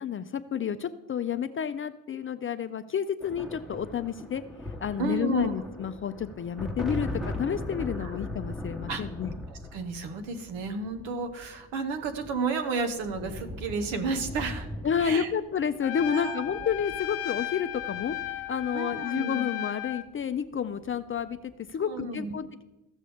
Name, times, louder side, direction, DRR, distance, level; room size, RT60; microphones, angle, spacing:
voice 1, 0.0-4.4 4.8-9.3 14.8-22.6, left 7 dB, 30° left, 11 dB, 0.4 m, -30 dB
sound 1, 3.2-18.9 20.1-20.4 20.6-21.3, left 1 dB, ahead, 1.0 m, -39 dB
voice 2, 5.0-5.5 8.0-8.1 8.9-9.0 9.5-14.7 15.0-15.3 16.1-16.7 18.7-19.5 21.8-22.4, right 4 dB, 80° right, 7 dB, 1.2 m, -32 dB
Trumpet, 15.8-20.1, left 15 dB, 90° left, 0.7 m, -35 dB
15.0 x 6.2 x 3.5 m, 1.0 s
supercardioid pair, 80°, 46 cm